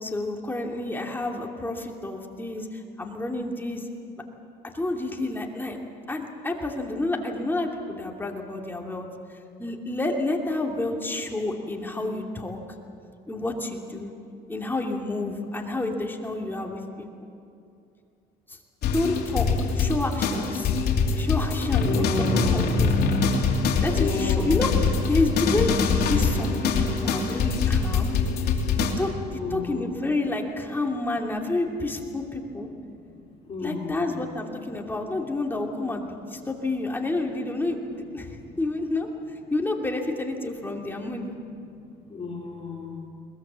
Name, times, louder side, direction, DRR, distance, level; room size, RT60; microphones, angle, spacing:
voice 1, 0.0-3.9 4.6-5.8 6.1-9.1 9.6-12.6 13.3-14.1 14.5-17.1 18.5-18.6 18.9-19.5 19.7-20.7 21.1-22.1 22.5-22.9 23.8-24.7 25.1-25.7 26.1-28.1 28.8-29.1 29.5-32.7 33.6-41.3, left 2 dB, 10° left, 1 dB, 2.7 m, -29 dB
sound 1, 18.8-28.9, left 4 dB, 70° left, 3.0 m, -24 dB
voice 2, 21.8-22.7 23.9-24.7 29.3-29.8 33.5-34.2 42.1-43.0, left 4 dB, 35° left, -1 dB, 3.5 m, -31 dB
22.0 x 20.5 x 7.5 m, 2.5 s
cardioid pair, 110°, 17 cm